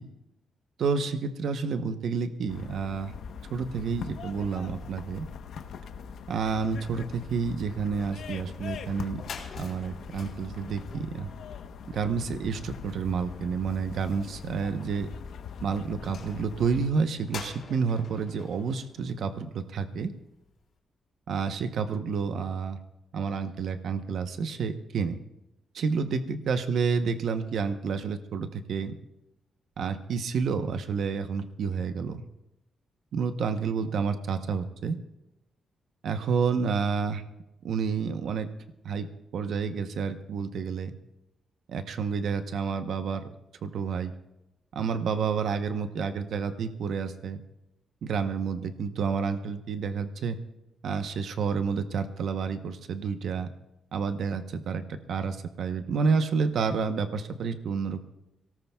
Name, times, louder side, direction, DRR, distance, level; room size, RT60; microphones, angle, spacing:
voice 1, 0.8-3.1 3.5-5.3 6.3-9.2 9.6-11.3 11.9-15.1 15.6-20.1 21.3-22.8 23.1-25.2 25.7-28.9 29.8-32.2 33.1-35.0 36.0-37.2 37.6-38.5 38.8-39.1 39.3-41.0 41.7-43.2 43.6-44.1 44.7-47.4 48.0-50.4 50.8-53.5 53.9-58.0, right 5 dB, 65° right, 8 dB, 0.8 m, -29 dB
sound 1, 2.5-16.9, left 7 dB, 75° left, 0.9 m, -42 dB
sound 2, 9.1-19.9, left 5 dB, 55° left, 3.5 m, -47 dB
24.0 x 18.0 x 2.3 m, 0.93 s
wide cardioid pair, 155°, 0 cm